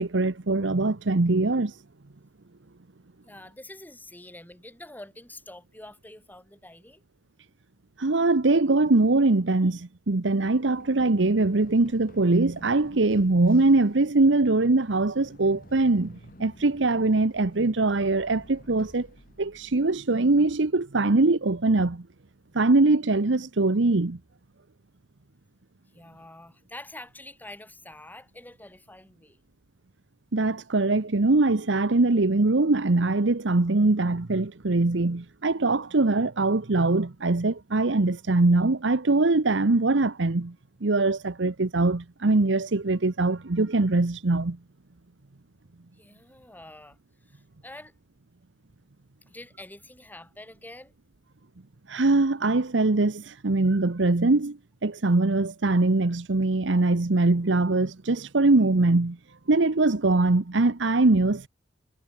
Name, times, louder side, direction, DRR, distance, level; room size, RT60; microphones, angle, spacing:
voice 1, 0.0-1.8 8.0-19.1 19.4-22.1 22.5-24.2 30.3-40.5 40.8-44.6 51.9-59.2 59.5-61.5, right 2 dB, 70° right, 1.0 m, -22 dB
voice 2, 3.2-7.0 25.9-29.4 45.9-47.9 49.3-51.0, left 1 dB, 10° left, 5.1 m, -46 dB
Run, 10.4-20.1, left 1 dB, 50° left, 7.5 m, -52 dB
head